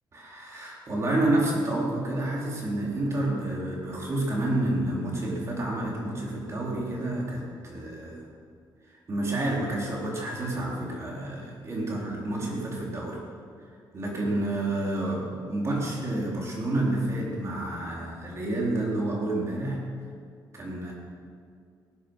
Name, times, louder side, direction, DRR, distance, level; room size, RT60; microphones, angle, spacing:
voice 1, 0.1-8.3 8.9-13.2 13.9-19.8 20.5-20.9, right 1 dB, 35° right, -3 dB, 3.7 m, -29 dB
18.5 x 10.5 x 6.2 m, 2.2 s
cardioid pair, 145°, 8 cm